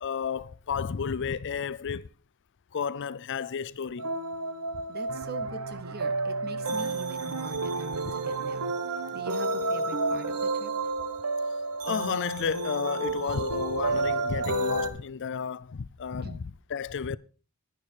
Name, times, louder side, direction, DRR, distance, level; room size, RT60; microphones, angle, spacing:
voice 1, 0.0-2.1 2.7-4.1 11.8-17.2, left 6 dB, 55° left, 0.5 m, -32 dB
sound 1, 4.0-14.9, right 2 dB, 85° right, 1.4 m, -30 dB
voice 2, 4.9-8.7 9.1-10.7 16.2-16.4, right 3 dB, 45° right, 1.1 m, -42 dB
sound 2, 5.1-10.5, right 4 dB, 65° right, 0.6 m, -43 dB
11.5 x 10.5 x 4.5 m
head